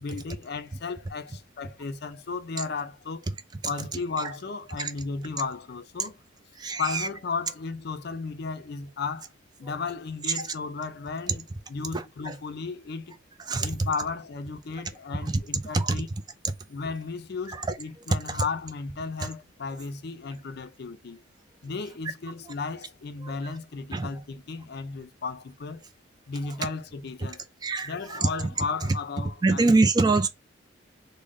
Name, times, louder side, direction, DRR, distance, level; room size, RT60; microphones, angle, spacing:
voice 1, 0.0-3.3 3.7-6.2 6.8-9.3 9.6-13.2 13.6-16.1 16.7-21.2 21.6-25.8 26.3-27.4 27.8-29.8, left 4 dB, 55° left, 0.5 m, -34 dB
voice 2, 6.6-7.1 11.9-12.3 13.5-13.9 15.2-15.3 15.7-16.0 17.5-17.8 18.3-18.4 23.2-23.3 23.9-24.1 27.6-28.3 29.4-30.3, right 3 dB, 20° right, 0.4 m, -25 dB
3.8 x 2.1 x 3.6 m
head